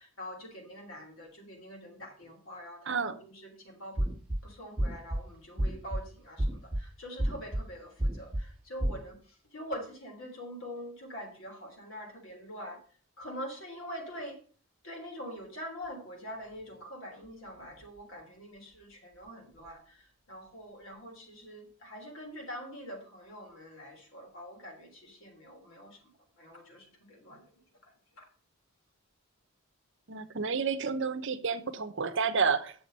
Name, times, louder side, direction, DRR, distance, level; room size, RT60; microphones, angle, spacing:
voice 1, 0.0-4.1 4.4-12.8 13.2-14.4 14.8-27.4 27.8-28.3, equal, 60° left, 3.3 m, -44 dB
voice 2, 2.9-3.2 30.1-32.7, right 5 dB, 55° right, 0.8 m, -30 dB
sound 1, 4.0-4.4 4.8-5.2 5.6-6.0 6.4-6.8 7.2-7.6 8.0-8.4 8.8-9.0, right 1 dB, 5° right, 1.3 m, -29 dB
9.2 x 7.0 x 5.3 m
head